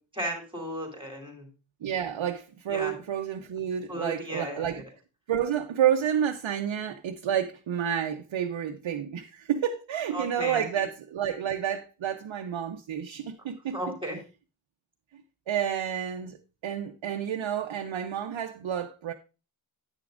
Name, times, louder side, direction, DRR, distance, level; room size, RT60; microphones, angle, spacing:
voice 1, 0.0-1.5 2.7-2.9 3.9-4.8 10.1-10.6 13.7-14.2, right 1 dB, 10° right, 2.5 m, -35 dB
voice 2, 1.8-4.8 5.3-14.0 15.5-19.1, right 9 dB, 80° right, 0.7 m, -30 dB
9.3 x 8.9 x 2.5 m
wide cardioid pair, 145°, 45 cm